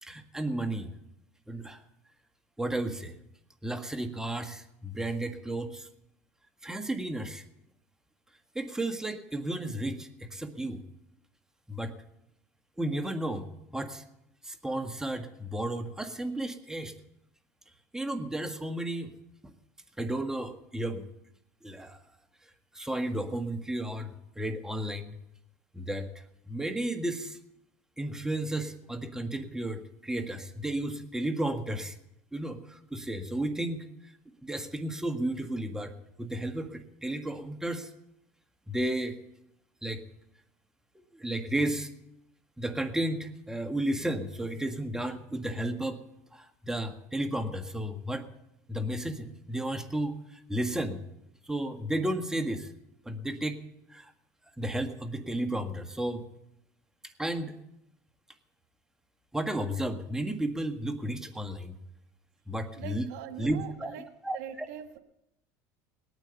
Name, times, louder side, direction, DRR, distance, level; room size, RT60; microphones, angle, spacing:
voice 1, 0.0-0.9 1.5-1.8 2.6-3.2 3.6-5.9 6.6-7.4 8.5-10.8 11.7-11.9 12.8-13.5 13.7-14.0 14.4-16.9 17.9-19.1 19.4-19.5 20.0-21.0 21.6-22.0 22.7-25.1 25.7-26.1 26.5-27.4 28.0-31.9 32.3-33.8 34.4-37.9 38.7-39.2 39.8-40.0 41.1-41.9 42.6-46.0 46.3-48.3 48.7-51.0 51.4-52.7 53.0-53.6 53.9-54.1 54.6-56.2 57.2-57.6 59.3-61.8 62.5-63.1 63.4-63.9 64.2-64.7, right 1 dB, 5° right, 6 dB, 1.5 m, -33 dB
voice 2, 62.7-64.0 64.3-65.0, right 10 dB, 80° right, 7 dB, 1.6 m, -42 dB
19.5 x 9.2 x 7.0 m, 0.84 s
supercardioid pair, 110°, 8 cm